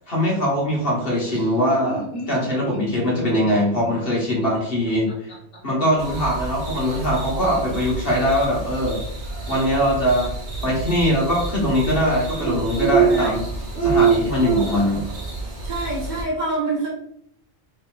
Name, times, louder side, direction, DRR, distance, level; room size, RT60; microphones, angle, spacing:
voice 1, 0.1-5.3 5.6-9.0 9.5-10.3 10.6-13.5 13.8-15.0, equal, 55° left, -4 dB, 1.4 m, -22 dB
Laughter, 1.0-5.6, left 1 dB, 80° left, 1.5 m, -35 dB
sound 1, 6.0-16.2, right 5 dB, 75° right, 1.3 m, -26 dB
voice 2, 15.6-16.9, right 2 dB, 40° right, -6 dB, 1.2 m, -26 dB
4.3 x 3.3 x 2.4 m, 0.71 s
omnidirectional pair, 1.2 m